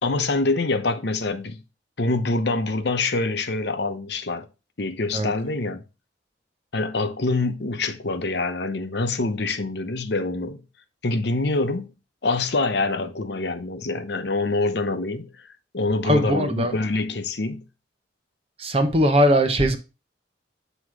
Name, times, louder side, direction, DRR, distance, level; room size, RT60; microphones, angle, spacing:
voice 1, 0.0-1.6 2.0-4.5 4.8-5.8 6.7-10.6 11.0-11.9 12.2-15.3 15.7-17.6, left 3 dB, 60° left, 0.8 m, -25 dB
voice 2, 16.0-16.7 18.6-19.8, equal, 30° right, 0.8 m, -20 dB
7.9 x 3.0 x 4.8 m
head